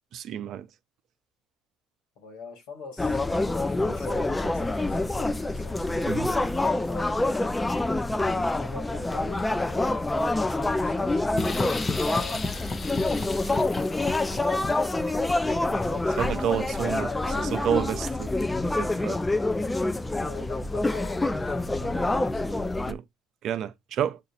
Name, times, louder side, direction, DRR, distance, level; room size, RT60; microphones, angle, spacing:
voice 1, 0.1-0.7 6.1-6.3 8.2-8.5 15.6-15.8 16.2-18.3 18.8-19.2 22.9-23.0 23.4-24.2, right 9 dB, 60° right, 0.5 m, -30 dB
voice 2, 2.2-7.2 8.5-10.0 10.5-12.5 15.8-17.8 19.0-19.3 20.2-22.6, left 4 dB, 80° left, 1.9 m, -45 dB
sound 1, 3.0-22.9, left 2 dB, 15° left, 0.4 m, -27 dB
sound 2, 11.4-16.5, left 3 dB, 35° left, 0.8 m, -34 dB
6.8 x 2.5 x 2.5 m
supercardioid pair, 70°, 0 cm